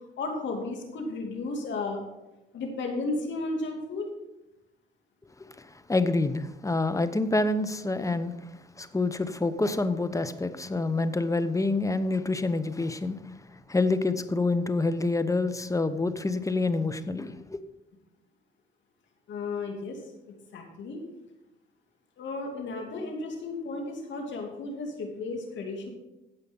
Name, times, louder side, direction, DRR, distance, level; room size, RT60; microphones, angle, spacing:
voice 1, 0.2-2.0 2.5-4.1 19.3-20.0 20.3-21.0 22.2-25.9, left 3 dB, 70° left, 2 dB, 2.9 m, -34 dB
voice 2, 5.6-8.5 8.8-13.3 13.7-17.6, left 2 dB, 15° left, 12 dB, 0.9 m, -27 dB
16.0 x 5.6 x 5.4 m, 0.97 s
cardioid pair, 90°, 20 cm